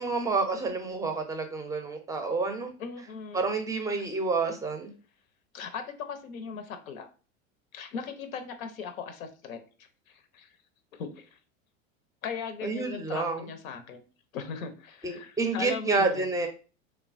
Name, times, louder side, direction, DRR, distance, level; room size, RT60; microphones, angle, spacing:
voice 1, 0.0-2.7 3.3-4.9 12.6-13.5 15.0-16.5, right 3 dB, 10° right, 5 dB, 0.4 m, -29 dB
voice 2, 2.8-3.5 5.5-7.1 7.7-10.5 10.9-11.4 12.2-14.0 14.3-16.3, left 6 dB, 85° left, 8 dB, 0.6 m, -39 dB
3.1 x 2.1 x 2.4 m, 0.35 s
hypercardioid pair, 95°, 40 cm